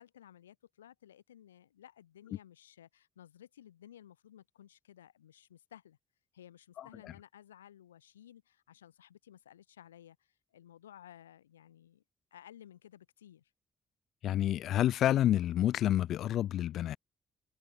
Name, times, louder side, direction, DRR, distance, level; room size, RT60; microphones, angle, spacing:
voice 1, 0.0-6.0 6.3-12.0 12.3-13.5, left 11 dB, 85° left, 2.9 m, -56 dB
voice 2, 14.2-17.0, left 12 dB, 65° left, 0.3 m, -28 dB
figure-of-eight pair, 40°, 0 cm